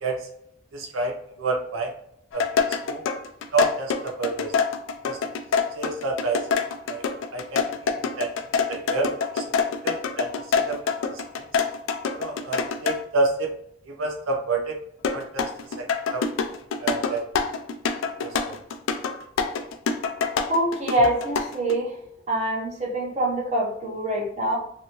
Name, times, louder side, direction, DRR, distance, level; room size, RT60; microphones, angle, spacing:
voice 1, 0.7-1.9 2.3-2.5 2.9-3.0 3.5-4.6 5.0-5.2 5.7-6.5 6.9-7.0 7.3-8.3 8.7-9.4 9.8-10.3 10.7-10.8 11.1-11.4 12.2-13.5 13.9-14.8 15.1-15.5 15.8-15.9 16.1-16.3 16.8-17.2 18.2-18.6, right 3 dB, 90° right, 1 dB, 0.6 m, -28 dB
sound 1, 2.3-13.0 15.0-21.7, left 5 dB, 80° left, 0.3 m, -25 dB
voice 2, 20.5-21.9 22.3-24.6, right 1 dB, 35° right, -3 dB, 0.8 m, -24 dB
2.7 x 2.7 x 2.9 m, 0.73 s
head